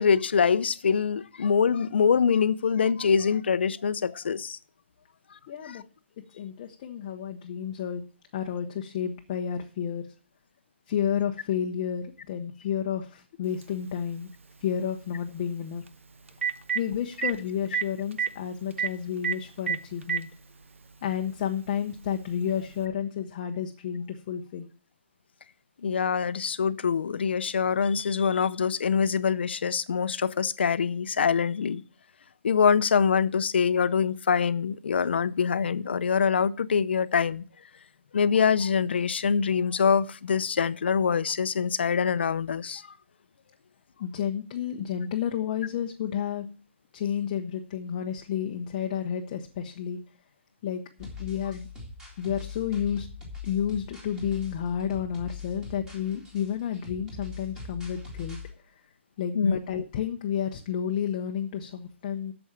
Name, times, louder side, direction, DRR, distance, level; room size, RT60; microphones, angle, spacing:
voice 1, 0.0-4.6 5.6-5.8 25.8-31.8 32.4-37.4 38.1-42.8 59.3-59.6, left 6 dB, 60° left, 0.7 m, -24 dB
voice 2, 5.5-5.8 6.3-8.0 8.3-10.0 10.9-14.3 14.6-15.8 16.7-20.3 21.0-24.7 44.0-46.5 46.9-50.0 50.6-51.7 52.2-53.1 53.4-58.4 59.2-62.3, left 8 dB, 25° left, 0.8 m, -31 dB
Telephone, 13.6-13.7 15.9-16.0 16.3-16.8 17.2-17.3 17.7-17.8 18.1-18.3 18.8-18.9 19.2-19.4 19.7-20.2 21.2-21.3 22.8-22.9, right 8 dB, 80° right, 1.0 m, -26 dB
sound 1, 51.0-58.5, left 5 dB, 10° right, 2.2 m, -41 dB
8.5 x 7.1 x 8.6 m
hypercardioid pair, 170°, 7 cm